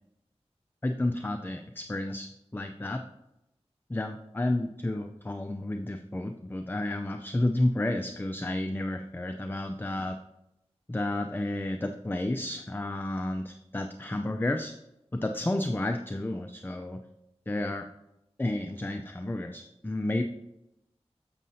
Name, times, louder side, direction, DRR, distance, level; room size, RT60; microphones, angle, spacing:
voice 1, 0.8-3.0 3.9-10.2 10.9-14.7 15.1-17.0 17.5-17.9 18.4-20.2, left 1 dB, 20° left, 5 dB, 0.5 m, -31 dB
7.4 x 7.2 x 2.7 m, 0.86 s
wide cardioid pair, 55°, 11 cm